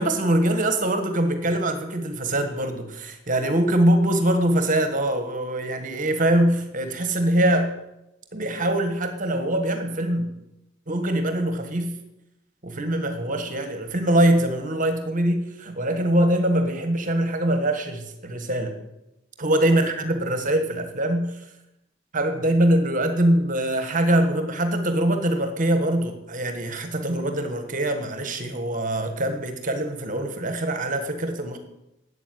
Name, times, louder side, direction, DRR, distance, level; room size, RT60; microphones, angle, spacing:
voice 1, 0.0-7.7 8.3-10.3 10.9-11.9 12.6-18.7 19.4-21.4 22.1-31.6, right 1 dB, 45° right, 7 dB, 1.5 m, -23 dB
12.5 x 8.5 x 9.5 m, 0.90 s
head